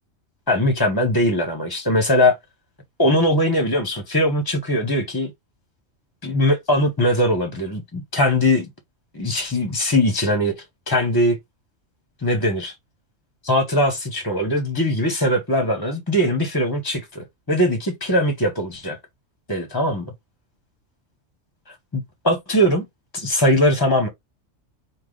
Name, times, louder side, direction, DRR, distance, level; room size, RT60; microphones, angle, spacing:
voice 1, 0.5-2.4 3.0-5.3 6.2-8.7 9.1-11.4 12.2-12.7 13.4-19.0 19.5-20.1 21.7-22.8 23.1-24.1, left 1 dB, 20° left, 0.8 m, -21 dB
4.9 x 2.4 x 3.8 m
omnidirectional pair, 1.3 m